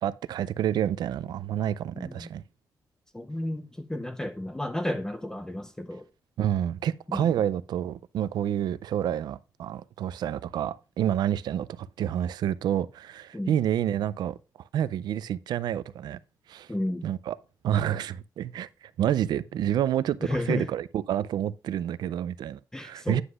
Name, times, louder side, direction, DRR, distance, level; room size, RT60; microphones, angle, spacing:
voice 1, 0.0-2.4 6.4-14.4 14.7-16.2 16.5-16.7 17.0-17.4 17.6-23.2, right 10 dB, 85° right, 0.4 m, -28 dB
voice 2, 1.9-2.3 3.1-6.1 7.1-7.4 13.3-13.5 16.7-17.1 20.2-20.7 22.7-23.2, left 1 dB, 10° left, 0.5 m, -32 dB
9.5 x 7.9 x 2.4 m
cardioid pair, 125°, 7 cm